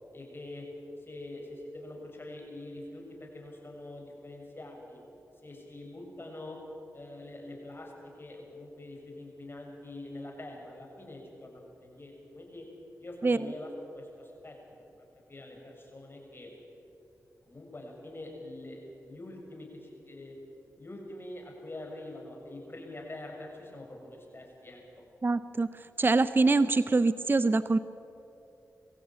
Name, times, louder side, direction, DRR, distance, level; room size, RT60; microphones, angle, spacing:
voice 1, 0.1-0.7 1.1-5.0 5.4-6.6 6.9-12.6 13.0-14.6 15.3-16.5 17.5-20.4 20.8-25.0, left 1 dB, 35° left, 0 dB, 6.4 m, -45 dB
voice 2, 25.2-25.7 26.0-27.8, right 3 dB, 35° right, 14 dB, 0.7 m, -24 dB
22.5 x 15.5 x 8.9 m, 2.8 s
cardioid pair, 50°, 6 cm